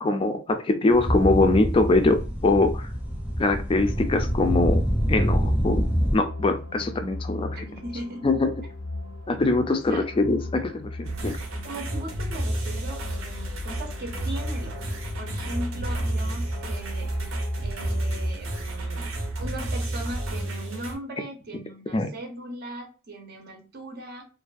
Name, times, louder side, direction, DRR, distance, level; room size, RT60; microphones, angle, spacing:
voice 1, 0.0-2.9 3.4-4.8 5.1-7.6 8.2-8.5 9.3-11.4 21.9-22.1, left 2 dB, 25° left, 7 dB, 0.3 m, -23 dB
sound 1, 0.9-6.2, equal, 5° right, 0.7 m, -25 dB
sound 2, 2.7-18.3, left 2 dB, 90° left, 0.5 m, -38 dB
voice 2, 7.5-8.2 9.9-10.1 11.6-19.1 19.4-24.2, right 1 dB, 50° right, 2 dB, 0.6 m, -39 dB
sound 3, 11.0-20.9, right 1 dB, 85° right, 0.7 m, -31 dB
2.4 x 2.2 x 2.4 m, 0.34 s
head